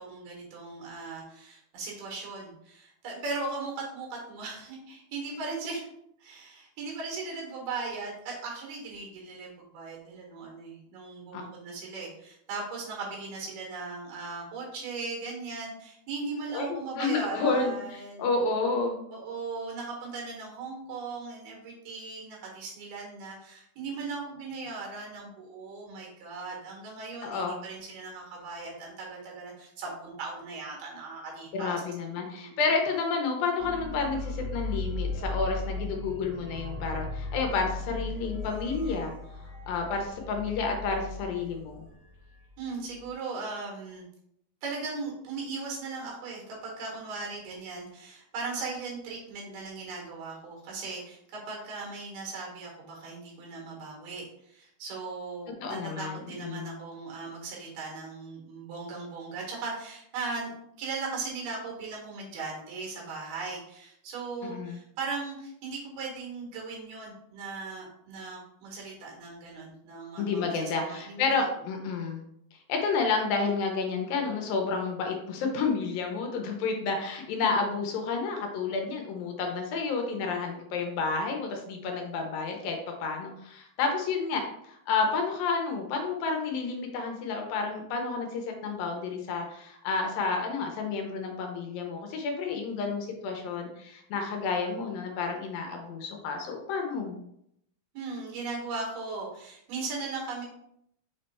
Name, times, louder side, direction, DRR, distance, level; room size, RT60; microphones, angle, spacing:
voice 1, 0.0-5.9 6.2-18.3 19.1-31.8 32.3-32.6 42.6-44.1 44.6-60.5 60.8-71.5 71.7-71.8 97.9-100.5, right 4 dB, 80° right, -1 dB, 3.7 m, -38 dB
voice 2, 16.5-19.0 27.2-27.5 31.5-39.1 39.7-41.9 55.6-56.7 64.4-64.8 70.2-72.2 72.5-97.2, left 4 dB, 75° left, 3 dB, 2.4 m, -30 dB
sound 1, 33.6-42.7 43.0-43.1, left 2 dB, 20° right, 1.6 m, -37 dB
6.8 x 3.3 x 4.3 m, 0.75 s
omnidirectional pair, 4.4 m